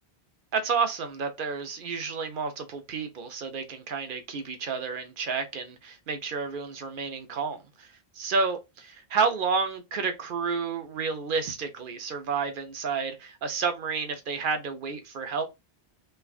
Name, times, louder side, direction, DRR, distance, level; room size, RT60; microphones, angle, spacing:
voice 1, 0.5-7.9 8.2-15.4, right 5 dB, 60° right, 0.7 m, -30 dB
3.2 x 2.3 x 2.3 m
omnidirectional pair, 1.1 m